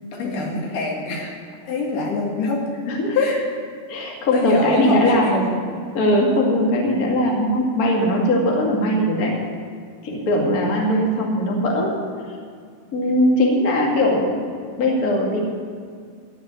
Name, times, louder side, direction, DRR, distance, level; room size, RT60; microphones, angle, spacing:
voice 1, 0.1-1.3 1.7-2.6 3.1-3.4 4.3-5.5, left 3 dB, 80° left, -2 dB, 4.1 m, -25 dB
voice 2, 2.9-3.4 3.9-5.3 5.9-9.4 10.0-12.0 12.9-14.3 14.8-15.4, left 1 dB, 35° left, -1 dB, 1.5 m, -20 dB
14.5 x 6.3 x 9.9 m, 2.1 s
omnidirectional pair, 4.6 m